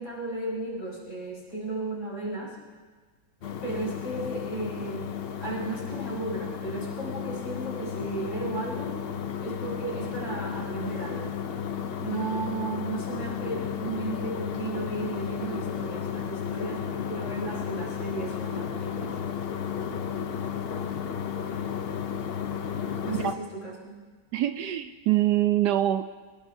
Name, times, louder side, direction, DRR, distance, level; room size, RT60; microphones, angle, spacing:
voice 1, 0.0-2.6 3.6-8.9 9.4-11.4 12.0-19.2 23.0-23.9, right 3 dB, 65° left, -5 dB, 5.3 m, -34 dB
sound 1, 3.4-23.3, left 8 dB, 85° left, 0.5 m, -33 dB
voice 2, 24.3-26.0, right 13 dB, 70° right, 9 dB, 1.1 m, -24 dB
23.5 x 20.0 x 2.7 m, 1.4 s
omnidirectional pair, 2.0 m